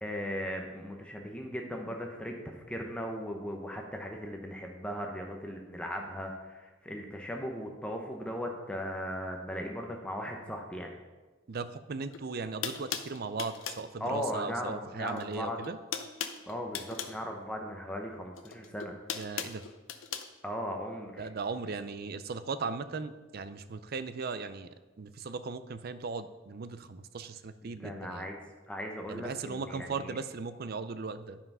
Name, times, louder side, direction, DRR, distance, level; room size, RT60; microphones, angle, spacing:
voice 1, 0.0-10.9 14.0-15.6 16.5-18.9 20.4-21.3 27.8-28.4 28.7-30.1, equal, 5° left, 2 dB, 0.8 m, -38 dB
voice 2, 11.5-15.8 19.1-19.6 21.2-24.7 25.0-28.3 29.1-31.4, right 4 dB, 50° right, 12 dB, 0.5 m, -37 dB
sound 1, 12.1-12.2 12.6-13.9 15.1-15.4 15.6-17.2 18.3-20.3, left 8 dB, 80° left, 0.7 m, -38 dB
9.7 x 5.7 x 5.5 m, 1.3 s
head